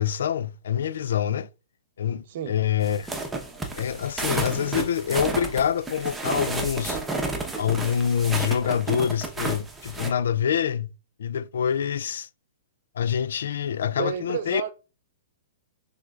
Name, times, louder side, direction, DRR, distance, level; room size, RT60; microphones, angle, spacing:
voice 1, 0.0-1.5 2.0-3.1 3.8-7.0 7.6-10.9 11.2-12.3 13.0-14.6, left 8 dB, 70° left, 0.3 m, -26 dB
sound 1, 2.8-10.1, right 2 dB, 10° right, 0.9 m, -31 dB
voice 2, 14.0-14.7, right 8 dB, 60° right, 0.7 m, -30 dB
6.1 x 3.4 x 2.4 m
hypercardioid pair, 120°, 0 cm